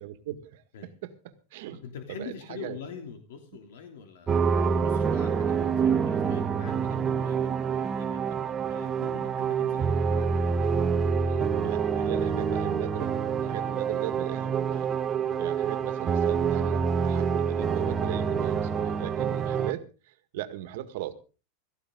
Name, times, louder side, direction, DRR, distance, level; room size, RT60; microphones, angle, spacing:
voice 1, 0.0-1.8 2.1-2.8 8.4-8.6 11.3-13.1 13.4-14.9 15.4-21.1, right 13 dB, 60° right, 1.8 m, -38 dB
voice 2, 1.7-8.2 8.7-10.5 13.6-13.7 15.2-15.4, left 6 dB, 80° left, 3.1 m, -45 dB
sound 1, 4.3-19.7, right 6 dB, 15° right, 1.0 m, -27 dB
17.0 x 14.5 x 3.9 m
supercardioid pair, 170°, 0 cm